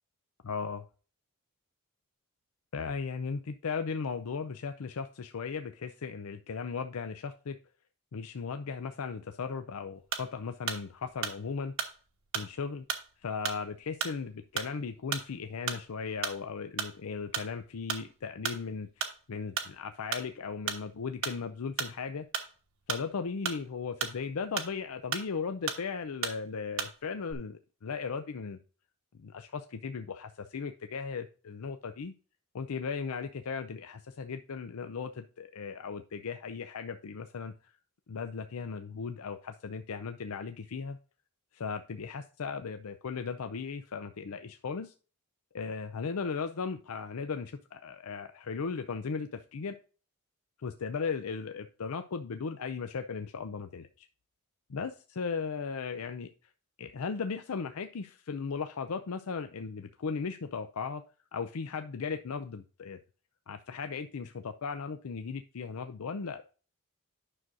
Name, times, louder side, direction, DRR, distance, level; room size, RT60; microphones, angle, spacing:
voice 1, 0.5-0.8 2.7-7.6 8.1-11.7 12.3-12.9 13.2-22.3 22.9-28.6 29.2-32.1 32.5-37.7 38.1-41.0 41.5-44.9 45.5-49.8 50.6-54.1 54.7-56.3 56.8-61.0 61.3-63.0 63.5-66.4, left 5 dB, 75° left, 8 dB, 0.5 m, -37 dB
sound 1, 10.1-10.4 10.7-10.9 11.2-11.9 12.3-12.6 12.9-13.1 13.5-13.6 14.0-14.2 14.6-14.8 15.1-15.3 15.7-15.9 16.2-16.5 16.8-17.0 17.3-17.5 17.9-18.1 18.4-18.6 19.0-19.2 19.6-19.8 20.1-20.3 20.7-20.9 21.2-21.4 21.8-22.0 22.3-22.5 22.9-23.6 24.0-24.2 24.6-24.7 25.1-25.4 25.7-25.9 26.2-26.4 26.8-27.0 27.2-27.3, right 7 dB, 65° right, 1.2 m, -34 dB
9.9 x 6.2 x 2.6 m, 0.36 s
head